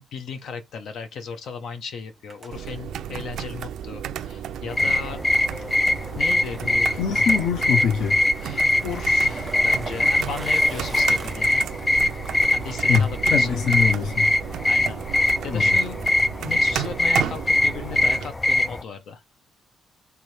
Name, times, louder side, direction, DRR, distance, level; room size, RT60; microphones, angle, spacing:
voice 1, 0.0-5.2 5.6-5.7 6.1-7.0 8.4-11.6 12.5-13.7 14.1-14.4 14.7-15.0 15.4-16.1 16.4-19.2, left 6 dB, 65° left, 0.9 m, -36 dB
Skateboard, 2.1-17.8, right 3 dB, 15° right, 0.9 m, -43 dB
sound 1, 2.5-18.3, right 9 dB, 75° right, 0.4 m, -34 dB
sound 2, 4.7-18.8, left 2 dB, 15° left, 0.3 m, -22 dB
voice 2, 7.0-8.2 12.9-14.3 15.5-15.6, left 7 dB, 90° left, 0.7 m, -23 dB
4.6 x 3.4 x 3.4 m
cardioid pair, 175°, 0 cm